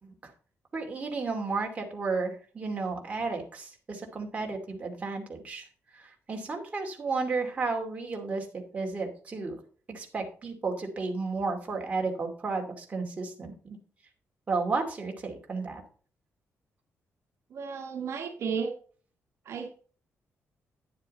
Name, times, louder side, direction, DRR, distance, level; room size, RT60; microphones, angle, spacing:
voice 1, 0.7-5.6 5.9-9.5 9.9-13.8 14.5-15.8, right 4 dB, 25° right, 1 dB, 2.5 m, -33 dB
voice 2, 17.5-18.7 19.4-19.7, right 6 dB, 65° right, 4 dB, 1.4 m, -33 dB
11.0 x 7.3 x 4.2 m, 0.41 s
cardioid pair, 150°, 5 cm